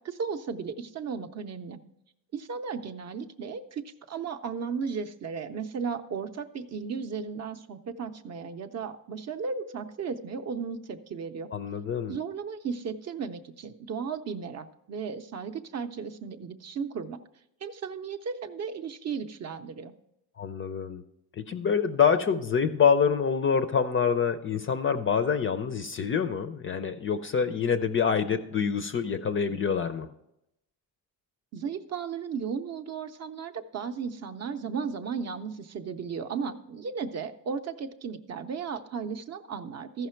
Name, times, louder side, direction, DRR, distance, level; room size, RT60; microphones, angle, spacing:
voice 1, 0.0-1.8 2.3-11.5 12.1-17.2 17.6-19.9 31.5-40.1, right 6 dB, 40° right, 8 dB, 0.6 m, -35 dB
voice 2, 11.5-12.2 20.4-21.0 21.4-30.1, left 6 dB, 35° left, 11 dB, 0.4 m, -26 dB
14.5 x 5.7 x 4.4 m, 0.83 s
cardioid pair, 165°, 40 cm